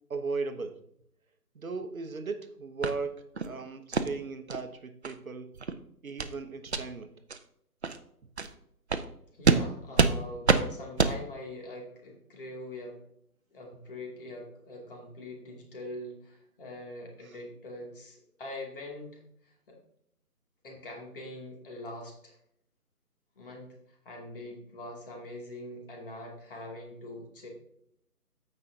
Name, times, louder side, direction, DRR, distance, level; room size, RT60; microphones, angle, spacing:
voice 1, 0.1-0.8 1.5-5.6 6.0-7.1 17.2-17.3, right 4 dB, 60° right, 9 dB, 1.1 m, -37 dB
sound 1, 2.8-2.9 3.4-3.5 3.9-4.1 4.5-4.6 5.0-5.1 5.5-5.7 6.2-6.3 6.7-6.8 7.3-7.4 7.8-8.0 8.4-8.5 8.9-9.0 9.4-9.6 10.0-10.1 10.5-10.6 11.0-11.1, right 4 dB, 45° right, 0.6 m, -25 dB
voice 2, 9.3-13.0 13.5-19.8 20.6-22.4 23.4-27.5, left 1 dB, 35° left, 0 dB, 2.6 m, -43 dB
15.0 x 5.4 x 2.8 m, 0.72 s
figure-of-eight pair, 160°, 46 cm